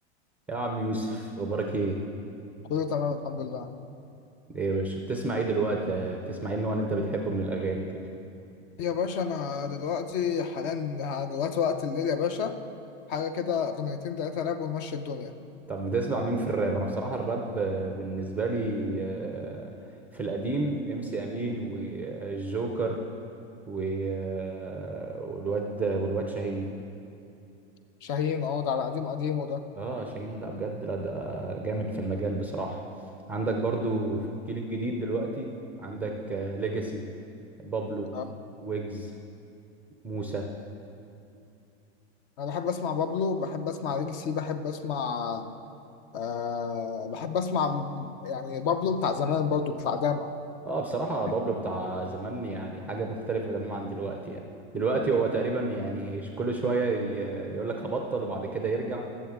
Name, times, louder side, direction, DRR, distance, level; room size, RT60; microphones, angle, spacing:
voice 1, 0.5-2.0 4.5-7.9 15.7-23.0 23.7-26.7 29.8-32.8 33.3-35.5 35.8-37.1 37.6-38.1 38.6-39.1 40.0-40.5 50.7-54.4 54.7-59.0, right 3 dB, 5° right, 1 dB, 0.4 m, -30 dB
voice 2, 2.7-3.7 8.8-12.6 13.1-15.3 28.0-29.6 38.1-38.2 42.4-45.5 46.1-50.3, left 6 dB, 50° left, 9 dB, 0.7 m, -29 dB
20.0 x 7.2 x 3.6 m, 2.7 s
supercardioid pair, 150°, 34 cm